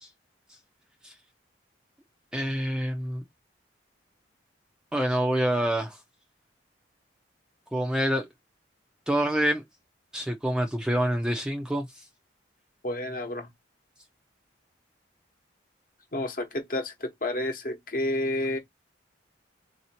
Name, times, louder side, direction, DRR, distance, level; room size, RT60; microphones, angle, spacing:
voice 1, 2.3-3.2 4.9-6.0 7.7-8.3 9.1-9.6 10.1-12.0, right 1 dB, 5° right, 0.6 m, -27 dB
voice 2, 12.8-13.5 16.1-18.6, left 1 dB, 45° left, 1.1 m, -30 dB
3.9 x 2.7 x 4.3 m
head